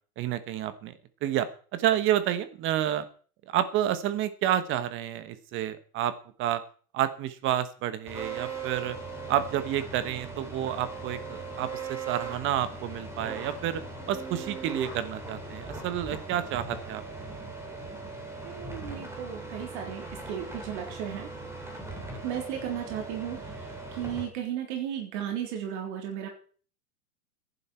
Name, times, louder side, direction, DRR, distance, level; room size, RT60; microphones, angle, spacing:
voice 1, 0.2-0.9 1.2-1.5 1.7-3.0 3.5-6.1 6.4-6.6 6.9-9.0 9.3-13.8 14.1-17.0, right 11 dB, 25° right, 13 dB, 1.2 m, -29 dB
sound 1, 8.1-24.2, right 3 dB, 5° right, 2.9 m, -39 dB
voice 2, 18.4-20.0 20.3-21.3 22.2-23.4 23.9-26.3, right 9 dB, 50° right, 2 dB, 3.9 m, -34 dB
15.0 x 11.0 x 4.5 m, 0.42 s
supercardioid pair, 155°, 45 cm